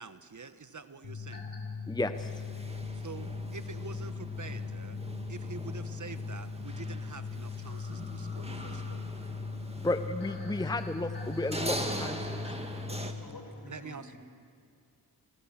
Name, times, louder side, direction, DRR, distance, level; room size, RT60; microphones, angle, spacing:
voice 1, 0.0-1.5 3.0-5.0 5.3-9.0 12.9-13.1 13.7-14.2, right 5 dB, 45° right, 11 dB, 1.2 m, -46 dB
sound 1, 1.0-13.2, left 4 dB, 85° left, 6.4 m, -39 dB
sound 2, 1.3-1.6 2.1-2.2 3.6-3.7 4.3-4.4 4.7-4.8 7.6-12.5, left 1 dB, 25° left, 4.8 m, -52 dB
voice 2, 1.9-2.3 9.8-12.4, left 2 dB, 10° left, 10 dB, 0.8 m, -33 dB
sound 3, 2.1-13.1, right 1 dB, 15° right, 2.1 m, -42 dB
voice 3, 13.1-14.2, left 2 dB, 65° left, 2 dB, 5.5 m, -49 dB
29.5 x 19.5 x 7.4 m, 2.3 s
wide cardioid pair, 70°, 40 cm